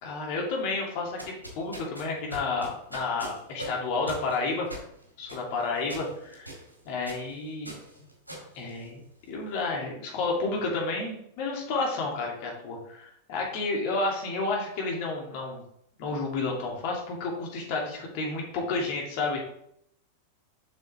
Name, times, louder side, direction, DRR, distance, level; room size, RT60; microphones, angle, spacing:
voice 1, 0.0-4.7 5.2-6.5 6.8-7.7 8.5-9.0 9.3-15.6 16.0-19.4, left 3 dB, 45° left, -1 dB, 2.5 m, -31 dB
sound 1, 1.0-9.4, equal, 85° right, 2.2 m, -43 dB
7.5 x 6.2 x 3.4 m, 0.71 s
figure-of-eight pair, 90°, 0 cm